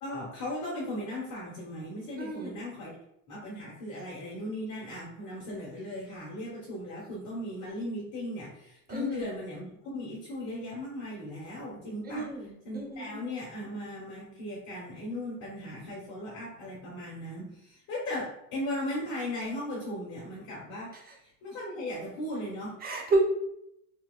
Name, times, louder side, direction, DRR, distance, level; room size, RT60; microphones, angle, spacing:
voice 1, 0.0-3.0 3.3-12.3 12.6-21.0 21.4-22.8, left 1 dB, 40° left, -5 dB, 1.4 m, -37 dB
voice 2, 2.2-2.5 8.9-9.3 12.0-13.2 21.1-21.2 22.8-23.2, right 2 dB, 20° right, 0 dB, 0.8 m, -31 dB
3.4 x 3.0 x 2.3 m, 0.79 s
supercardioid pair, 115°, 46 cm